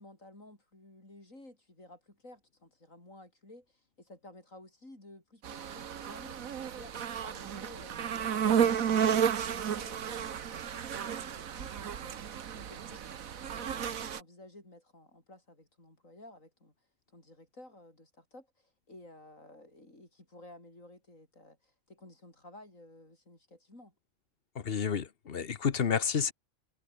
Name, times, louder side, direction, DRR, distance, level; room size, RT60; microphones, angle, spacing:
voice 1, 0.0-16.7 17.1-23.9, left 1 dB, 70° left, 8.0 m, -54 dB
sound 1, 5.4-14.2, right 8 dB, 80° right, 1.6 m, -32 dB
voice 2, 24.6-26.3, left 7 dB, 45° left, 1.1 m, -30 dB
omnidirectional pair, 1.4 m